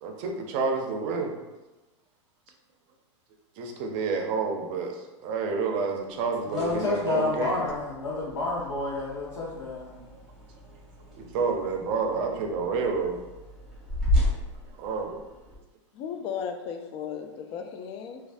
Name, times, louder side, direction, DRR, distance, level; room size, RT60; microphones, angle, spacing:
voice 1, 0.0-1.3 3.6-7.6 11.2-13.2 14.8-15.2, right 4 dB, 45° right, 3 dB, 0.5 m, -29 dB
sound 1, 6.4-15.6, left 1 dB, 5° right, 1.2 m, -34 dB
voice 2, 6.5-10.0, left 2 dB, 80° left, -6 dB, 0.7 m, -29 dB
voice 3, 15.9-18.2, left 7 dB, 35° left, 5 dB, 0.4 m, -35 dB
3.2 x 2.3 x 2.5 m, 1.1 s
hypercardioid pair, 110°, 16 cm